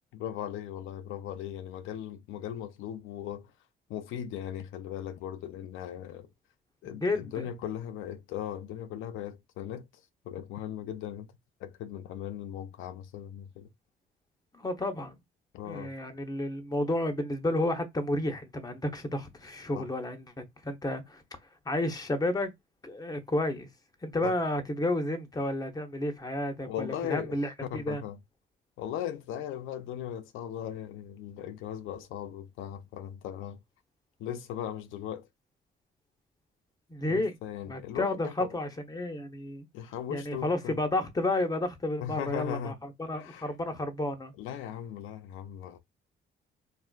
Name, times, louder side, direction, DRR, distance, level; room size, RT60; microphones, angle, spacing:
voice 1, 0.1-3.5 3.9-6.3 6.8-11.3 11.6-13.7 15.5-15.9 19.7-19.9 24.2-24.3 26.6-28.2 28.8-33.6 34.2-35.3 37.1-38.6 39.7-40.8 42.0-42.8 43.1-43.5 44.4-45.8, left 10 dB, 85° left, 0.5 m, -38 dB
voice 2, 7.0-7.4 14.5-15.1 15.7-21.2 21.7-22.5 22.8-23.7 24.0-28.0 36.9-37.3 37.7-39.6 40.1-42.7 43.0-44.3, left 1 dB, 20° left, 0.9 m, -31 dB
4.1 x 2.5 x 2.3 m
cardioid pair, 90°, 20 cm